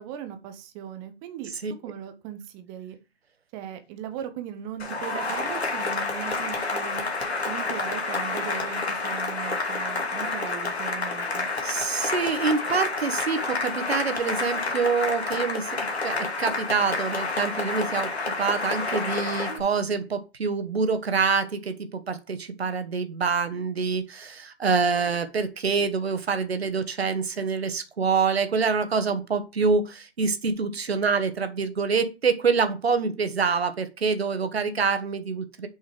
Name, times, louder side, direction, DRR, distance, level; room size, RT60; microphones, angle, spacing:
voice 1, 0.0-1.5 1.8-3.0 3.5-7.1 7.5-11.5, right 10 dB, 10° right, 0.6 m, -38 dB
Cheering / Applause, 4.8-19.6, left 3 dB, 70° left, 2.6 m, -29 dB
voice 2, 11.6-35.7, right 5 dB, 65° right, 1.4 m, -26 dB
7.7 x 5.5 x 4.8 m
figure-of-eight pair, 130°, 33 cm